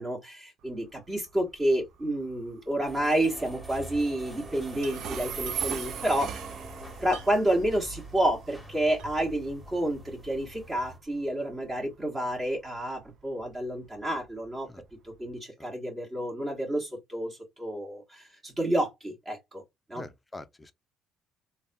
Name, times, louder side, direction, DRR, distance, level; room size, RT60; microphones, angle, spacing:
voice 1, 0.0-6.4 7.0-14.7 15.0-19.6 19.9-20.1, right 1 dB, 20° right, 1.1 m, -29 dB
Train, 0.6-15.4, right 7 dB, 65° right, 0.5 m, -42 dB
sound 1, 2.9-11.0, right 1 dB, ahead, 1.2 m, -45 dB
sound 2, 3.2-3.5 3.8-3.9 4.8-5.9 7.1-7.6 8.1-8.2 9.0-9.4, right 4 dB, 85° right, 1.0 m, -47 dB
voice 2, 20.0-20.7, left 2 dB, 15° left, 0.5 m, -43 dB
3.4 x 2.2 x 2.6 m
cardioid pair, 105°, 0 cm